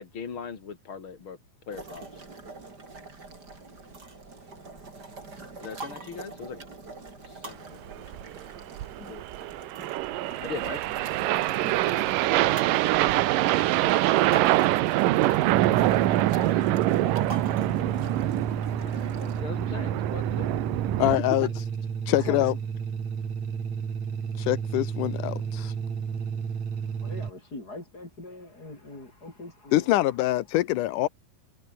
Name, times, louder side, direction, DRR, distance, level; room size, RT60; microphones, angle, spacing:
voice 1, 0.0-1.4 1.7-2.2 5.6-6.6 7.2-8.5 10.4-10.8 13.1-13.3 16.1-16.8 18.8-20.6 21.4-21.5, left 6 dB, 35° left, 2.6 m, -40 dB
sound 1, 1.7-19.4, right 3 dB, 25° right, 4.4 m, -44 dB
sound 2, 7.9-21.2, right 16 dB, 90° right, 1.9 m, -25 dB
voice 2, 9.0-9.3 11.6-11.9 14.0-14.2 17.7-18.0 22.2-22.5 27.0-30.1, left 2 dB, 20° left, 7.8 m, -42 dB
sound 3, 15.5-27.3, right 6 dB, 45° right, 3.8 m, -32 dB
voice 3, 21.0-21.5 22.1-22.5 24.4-25.7 29.7-31.1, left 15 dB, 85° left, 1.8 m, -24 dB
omnidirectional pair, 4.9 m